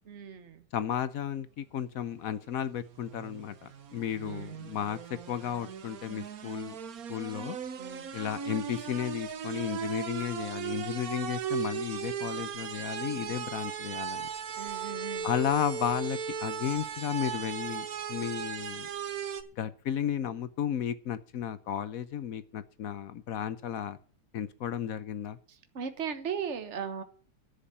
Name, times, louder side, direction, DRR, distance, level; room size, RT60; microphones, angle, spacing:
voice 1, 0.1-0.6 4.2-4.5 7.8-8.1 14.6-15.3 25.7-27.0, right 7 dB, 45° right, 9 dB, 1.5 m, -37 dB
voice 2, 0.7-6.8 7.1-7.6 8.1-14.3 15.2-18.9 19.6-24.0 24.3-25.4, left 9 dB, 65° left, 14 dB, 1.1 m, -33 dB
Long Air Raid Siren, 2.7-19.4, right 7 dB, 60° right, 1.4 m, -37 dB
10.5 x 7.5 x 8.6 m, 0.44 s
omnidirectional pair, 1.8 m